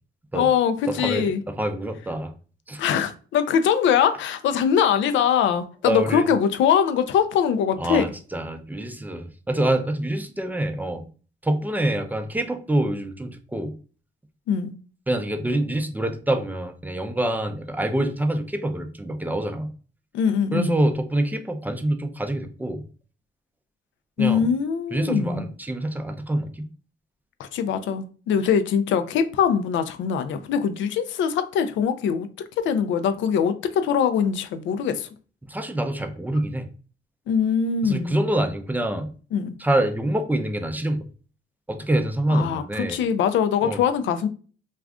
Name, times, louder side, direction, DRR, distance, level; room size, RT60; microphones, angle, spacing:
voice 1, 0.3-1.4 2.8-8.0 14.5-14.7 20.1-20.8 24.2-25.5 27.4-32.3 32.6-35.1 37.3-38.2 39.3-39.5 42.3-44.3, left 7 dB, 75° left, 0.4 m, -22 dB
voice 2, 1.0-2.3 2.7-2.8 5.8-6.3 7.8-11.0 11.4-13.7 15.1-19.7 20.5-22.8 24.2-24.5 24.9-26.7 35.5-36.7 37.8-39.1 39.6-41.1 41.7-43.0 43.6-43.8, right 1 dB, 10° right, 0.4 m, -26 dB
2.4 x 2.3 x 3.4 m
cardioid pair, 90°, 20 cm